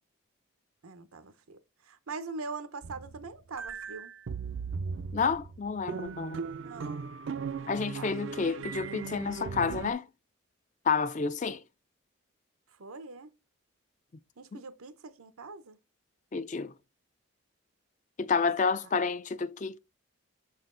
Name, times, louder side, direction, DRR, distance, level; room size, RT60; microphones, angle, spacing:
voice 1, 0.8-1.6 1.8-4.1 6.6-7.1 7.9-8.1 12.8-13.3 14.4-15.8, right 4 dB, 90° right, 0.8 m, -42 dB
sound 1, 2.8-9.9, right 5 dB, 60° right, 0.4 m, -38 dB
voice 2, 5.1-6.4 7.7-10.1 10.9-11.6 14.5-14.6 16.3-16.7 18.2-19.8, left 5 dB, 35° left, 0.4 m, -30 dB
6.6 x 4.3 x 3.7 m
head